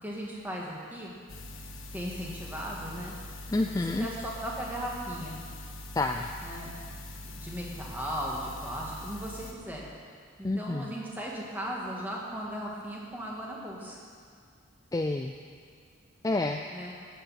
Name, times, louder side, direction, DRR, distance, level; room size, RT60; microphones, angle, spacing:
voice 1, 0.0-1.2 1.9-3.1 3.7-5.4 6.4-6.7 7.3-9.9 10.4-14.0 16.7-16.9, equal, 10° right, -4 dB, 1.9 m, -37 dB
sound 1, 1.3-9.5, left 1 dB, 70° left, 1.3 m, -43 dB
voice 2, 3.5-4.1 6.0-6.3 10.4-10.9 14.9-15.3 16.2-16.6, left 2 dB, 15° left, 4 dB, 0.3 m, -28 dB
13.5 x 9.4 x 5.8 m, 2.2 s
head